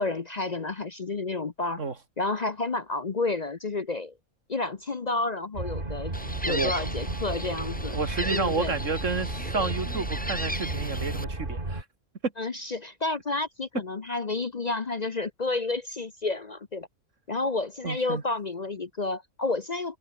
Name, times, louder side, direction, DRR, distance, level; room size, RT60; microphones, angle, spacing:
voice 1, 0.0-1.8 2.2-4.1 4.5-6.1 6.4-8.0 8.3-8.8 12.4-16.9 17.3-20.0, left 3 dB, 35° left, 0.9 m, -30 dB
sound 1, 5.5-11.8, right 2 dB, 40° right, 3.8 m, -33 dB
Gull seagull, 6.1-11.2, equal, 5° left, 7.1 m, -36 dB
voice 2, 6.5-6.8 7.9-11.8 17.8-18.2, right 4 dB, 70° right, 2.7 m, -30 dB
omnidirectional pair, 1.4 m